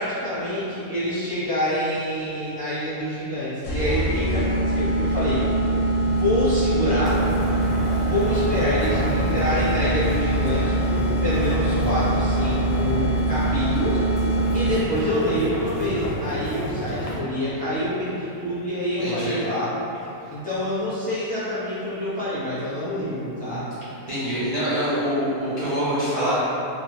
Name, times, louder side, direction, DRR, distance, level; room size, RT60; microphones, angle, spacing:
voice 1, 0.0-5.4 6.0-7.2 8.0-14.0 14.5-19.7 20.3-23.6, left 1 dB, 10° left, -14 dB, 0.5 m, -26 dB
sound 1, 3.6-15.1, right 1 dB, 65° left, 0.7 m, -23 dB
sound 2, 7.0-17.2, equal, 85° left, 1.0 m, -30 dB
voice 2, 19.0-19.4 20.2-20.3 24.1-26.3, equal, 70° right, -14 dB, 0.3 m, -25 dB
2.7 x 2.1 x 3.1 m, 2.9 s
omnidirectional pair, 1.5 m